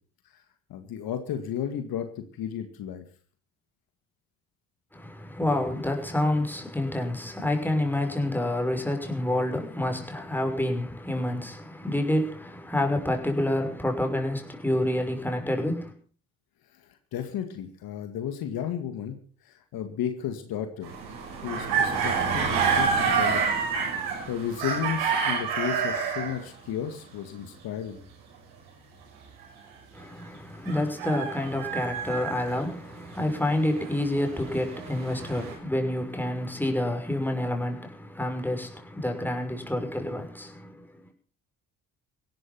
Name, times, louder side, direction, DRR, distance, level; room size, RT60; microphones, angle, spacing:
voice 1, 0.7-3.0 17.1-19.2 19.5-20.9 21.3-23.5 24.3-28.0, left 9 dB, 70° left, 2.1 m, -33 dB
voice 2, 4.9-15.9 29.9-40.9, left 1 dB, 5° left, 5.8 m, -28 dB
sound 1, 20.8-26.4 30.7-32.6 33.4-35.5, right 6 dB, 85° right, 5.8 m, -28 dB
17.0 x 13.0 x 5.6 m
supercardioid pair, 60°, 37 cm